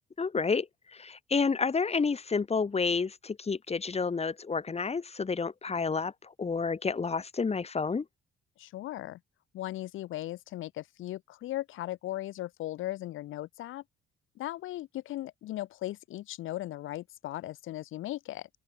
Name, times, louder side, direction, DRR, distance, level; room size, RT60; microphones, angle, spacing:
voice 1, 0.2-6.1 6.4-8.0, left 5 dB, 30° left, 3.1 m, -30 dB
voice 2, 8.6-9.2 9.5-13.8 14.4-18.5, left 15 dB, 85° left, 5.6 m, -37 dB
open air
cardioid pair, 90°, 20 cm